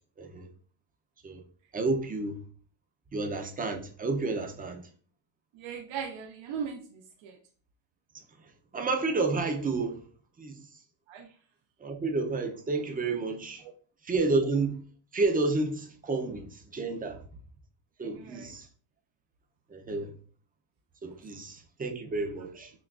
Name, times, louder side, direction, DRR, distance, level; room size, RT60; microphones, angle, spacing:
voice 1, 1.7-2.4 3.1-4.9 8.7-10.0 10.4-10.6 11.8-13.6 14.0-14.8 15.1-17.2 18.0-18.7 19.7-20.1 21.0-22.7, right 3 dB, 20° right, 0.5 m, -30 dB
voice 2, 5.5-7.4 11.1-11.3 18.0-18.5, right 7 dB, 75° right, 0.6 m, -39 dB
5.9 x 2.3 x 2.4 m
cardioid pair, 140°, 46 cm